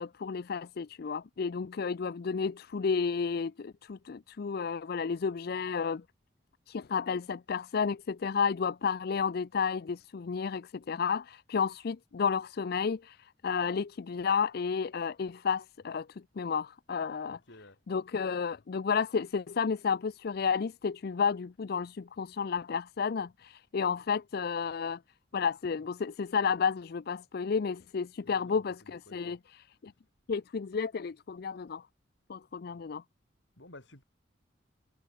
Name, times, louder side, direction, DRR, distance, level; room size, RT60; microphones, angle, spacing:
voice 1, 0.0-6.0 6.7-16.1 16.4-17.4 17.9-25.0 25.3-29.4 29.8-29.9 30.3-31.8 32.3-33.0, left 6 dB, 60° left, 0.4 m, -32 dB
voice 2, 17.3-17.8 28.2-29.4 33.6-34.0, left 2 dB, 85° left, 4.8 m, -53 dB
head